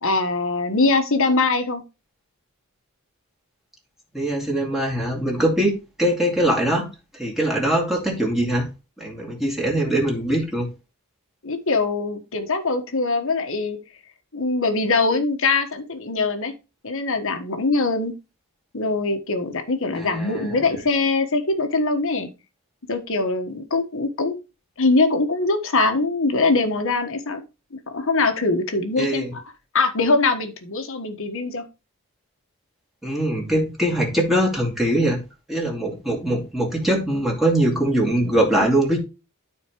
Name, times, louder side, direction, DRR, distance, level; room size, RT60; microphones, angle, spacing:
voice 1, 0.0-1.8 11.4-13.8 14.3-16.5 16.8-18.1 18.7-22.3 22.9-24.3 24.8-27.4 27.7-29.4 29.7-31.6, left 3 dB, 65° left, 7 dB, 1.4 m, -22 dB
voice 2, 4.1-8.7 9.0-10.7 19.9-20.6 29.0-29.3 33.0-35.2 35.5-39.0, right 1 dB, ahead, -3 dB, 2.5 m, -22 dB
13.0 x 4.4 x 3.1 m, 0.29 s
head